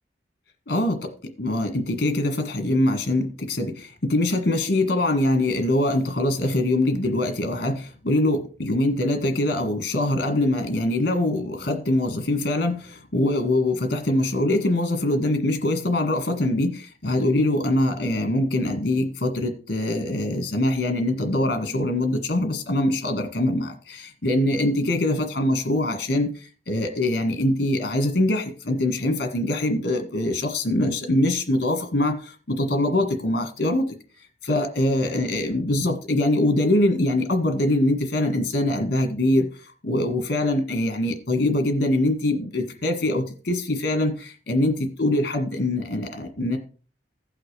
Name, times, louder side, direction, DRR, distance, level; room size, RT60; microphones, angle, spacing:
voice 1, 0.7-33.9 34.4-46.6, left 1 dB, 60° left, 6 dB, 1.5 m, -23 dB
16.0 x 5.9 x 3.3 m, 0.38 s
head